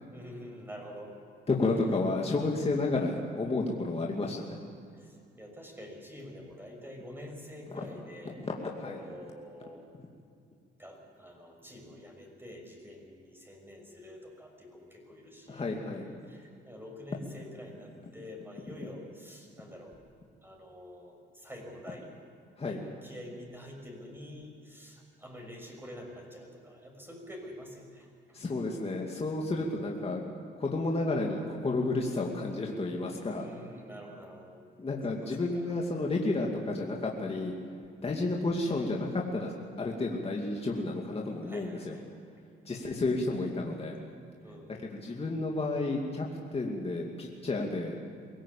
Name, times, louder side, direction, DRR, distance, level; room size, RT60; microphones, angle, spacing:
voice 1, 0.1-1.1 3.9-4.3 5.4-8.4 8.8-9.9 10.8-15.7 16.3-20.0 20.4-22.1 22.7-22.8 23.0-28.1 29.5-29.7 33.2-34.6 35.1-35.2 41.5-42.0 42.7-42.9 44.4-45.0, equal, 10° right, 1 dB, 6.3 m, -47 dB
voice 2, 1.5-4.6 7.7-7.9 8.3-9.0 15.5-16.0 18.0-18.1 22.6-22.8 28.3-30.2 30.6-33.5 34.8-37.5 38.0-42.0 42.7-43.9 44.9-46.3 46.5-48.0, left 2 dB, 30° left, -1 dB, 2.5 m, -31 dB
23.5 x 17.0 x 8.6 m, 2.4 s
cardioid pair, 90°, 20 cm